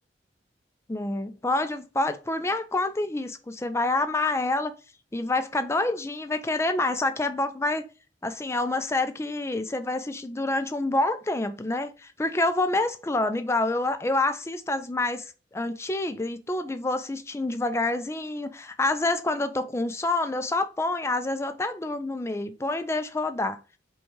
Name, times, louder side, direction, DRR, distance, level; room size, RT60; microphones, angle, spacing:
voice 1, 0.9-4.7 5.1-7.8 8.2-15.2 15.5-23.6, left 2 dB, 15° left, 0.4 m, -27 dB
5.2 x 2.3 x 3.1 m
head